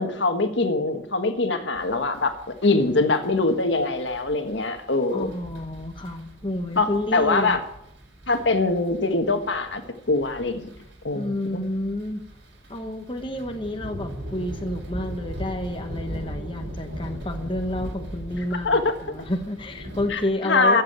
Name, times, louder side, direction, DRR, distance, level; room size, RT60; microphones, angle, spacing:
voice 1, 0.0-5.3 6.7-7.6 8.3-9.8 10.1-10.7 11.0-11.6 18.6-18.9 20.1-20.8, left 3 dB, 75° left, 7 dB, 1.5 m, -23 dB
sound 1, 1.7-20.3, equal, 75° right, 4.7 m, -39 dB
voice 2, 5.1-7.6 11.1-12.2 12.7-20.8, left 1 dB, 25° left, 5 dB, 1.1 m, -30 dB
14.5 x 7.6 x 8.8 m, 0.77 s
head